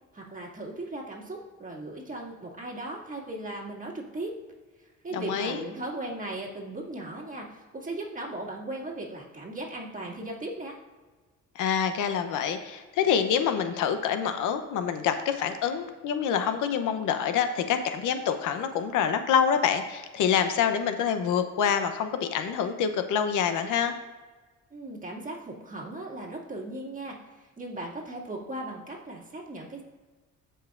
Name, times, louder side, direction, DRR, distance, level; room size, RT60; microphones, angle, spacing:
voice 1, 0.1-4.3 5.0-10.8 24.7-29.8, right 2 dB, 25° right, -3 dB, 2.2 m, -37 dB
voice 2, 5.1-5.6 11.6-23.9, left 7 dB, 85° left, 9 dB, 0.8 m, -26 dB
15.0 x 5.5 x 2.5 m, 1.3 s
cardioid pair, 90°, 30 cm